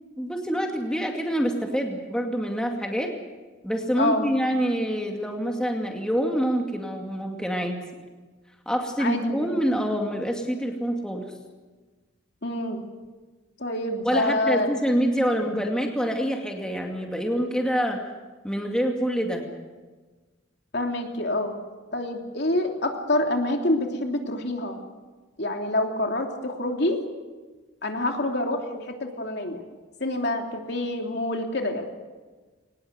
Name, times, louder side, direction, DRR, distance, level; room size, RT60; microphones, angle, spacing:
voice 1, 0.2-3.1 3.6-7.8 8.7-11.3 14.0-18.0 18.4-19.4, equal, 5° left, 1 dB, 2.3 m, -26 dB
voice 2, 4.0-4.3 9.0-9.4 12.4-12.8 13.6-14.7 20.7-21.5 21.9-24.8 25.4-27.0 27.8-29.6 30.0-31.9, left 1 dB, 60° left, 3 dB, 3.1 m, -26 dB
23.0 x 19.5 x 8.0 m, 1.3 s
head